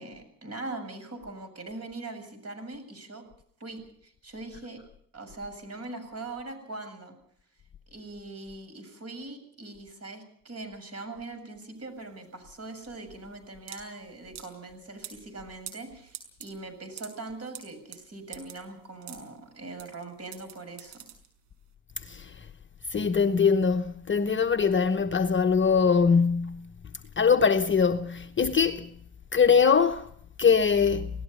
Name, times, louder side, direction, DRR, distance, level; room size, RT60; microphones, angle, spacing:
voice 1, 0.0-3.2 3.6-4.8 5.1-7.2 7.9-21.0, right 2 dB, 30° right, 7.4 m, -41 dB
sound 1, 11.8-21.7, right 10 dB, 65° right, 5.9 m, -47 dB
voice 2, 22.0-22.5 22.9-26.6 27.2-28.9 29.3-30.1 30.4-31.1, left 6 dB, 25° left, 1.1 m, -22 dB
27.5 x 18.5 x 5.6 m
hypercardioid pair, 65°, 47 cm